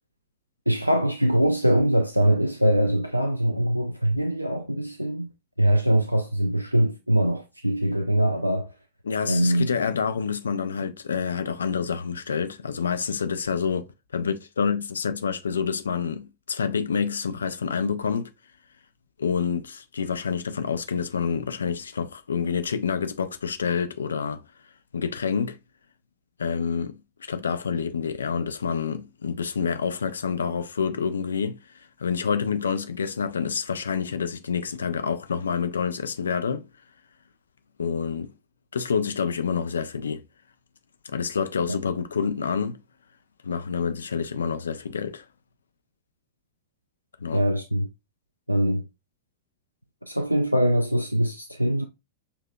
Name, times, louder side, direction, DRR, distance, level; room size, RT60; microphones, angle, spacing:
voice 1, 0.7-5.3 5.6-8.7 9.2-9.7 41.7-41.8 47.3-47.9 48.5-48.8 50.0-51.9, equal, 90° right, 0.3 m, -23 dB
voice 2, 9.0-13.9 14.1-18.3 19.2-24.4 24.9-25.6 26.4-36.7 37.8-38.3 38.7-40.2 41.0-42.8 43.4-45.2 47.2-47.4, left 6 dB, 70° left, 0.4 m, -28 dB
6.8 x 2.7 x 2.3 m
figure-of-eight pair, 90°, 0 cm